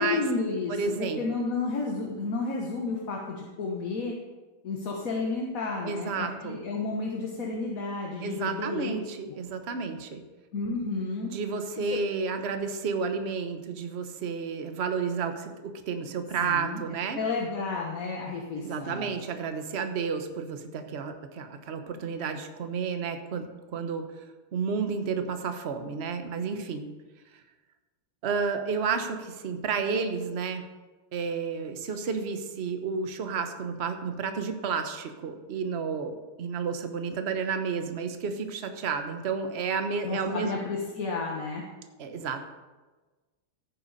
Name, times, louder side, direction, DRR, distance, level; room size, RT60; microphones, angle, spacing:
voice 1, 0.0-4.1 4.6-8.9 10.5-11.3 11.9-12.0 16.4-16.8 17.1-19.1 40.0-41.6, left 3 dB, 45° left, -1 dB, 1.5 m, -31 dB
voice 2, 0.7-1.4 5.8-6.6 8.2-10.2 11.3-17.2 18.6-23.5 23.7-24.1 24.5-26.9 28.2-30.6 31.1-40.5 42.0-42.4, right 5 dB, 45° right, 7 dB, 0.8 m, -31 dB
15.0 x 9.0 x 4.1 m, 1.2 s
omnidirectional pair, 2.3 m